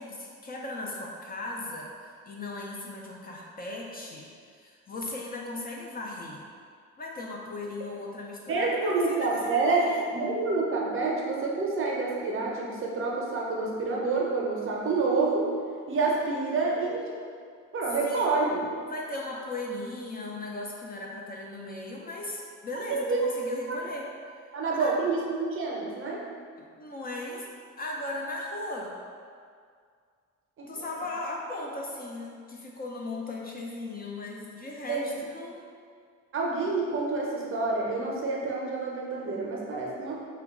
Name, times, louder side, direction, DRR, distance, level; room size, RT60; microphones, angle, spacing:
voice 1, 0.0-4.3 4.6-6.4 7.0-10.0 18.0-18.3 18.9-24.1 24.8-24.9 26.6-27.5 27.8-29.0 30.7-35.7, left 2 dB, 30° left, -2 dB, 0.4 m, -37 dB
voice 2, 8.5-15.5 15.9-17.2 17.7-18.6 22.9-23.8 24.5-26.2 30.6-30.8 34.9-35.1 36.3-40.2, right 3 dB, 45° right, -2 dB, 0.6 m, -28 dB
2.9 x 2.2 x 3.5 m, 2.1 s
cardioid pair, 90°, 30 cm